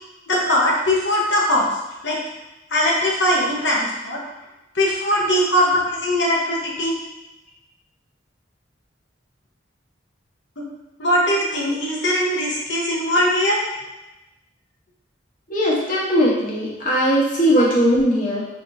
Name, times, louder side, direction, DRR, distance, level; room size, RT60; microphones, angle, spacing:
voice 1, 0.3-1.7 2.0-2.2 2.7-4.2 4.7-7.0 10.6-10.7 11.0-13.6 17.5-17.6, equal, 70° left, -3 dB, 1.1 m, -20 dB
voice 2, 15.5-18.4, equal, 45° left, -6 dB, 1.2 m, -19 dB
4.7 x 4.0 x 2.8 m, 0.98 s
head